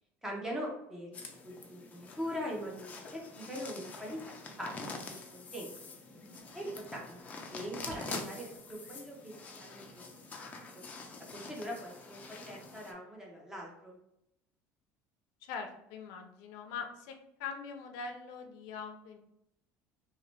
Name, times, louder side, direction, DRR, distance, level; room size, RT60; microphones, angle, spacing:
voice 1, 0.2-4.9 5.3-5.9 6.5-7.2 7.5-10.0 10.7-10.8 11.3-14.0, equal, 10° right, -2 dB, 0.9 m, -42 dB
sound 1, 1.1-12.9, left 3 dB, 25° left, 0.5 m, -46 dB
sound 2, 6.4-9.4, right 4 dB, 70° right, 0.8 m, -56 dB
voice 2, 15.4-19.2, left 5 dB, 75° left, 5 dB, 0.6 m, -42 dB
3.0 x 2.9 x 3.3 m, 0.80 s
cardioid pair, 150°, 6 cm